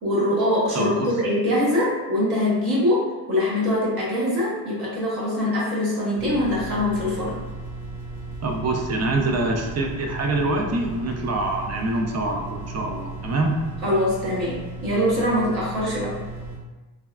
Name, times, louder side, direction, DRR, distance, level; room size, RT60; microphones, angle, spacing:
voice 1, 0.0-7.4 13.8-16.1, left 1 dB, 55° right, -6 dB, 1.4 m, -23 dB
voice 2, 0.7-1.1 8.4-13.6, right 2 dB, 35° right, 3 dB, 0.6 m, -25 dB
sound 1, 6.2-16.6, right 3 dB, 75° right, 1.1 m, -36 dB
3.3 x 2.3 x 2.3 m, 1.2 s
supercardioid pair, 60°, 44 cm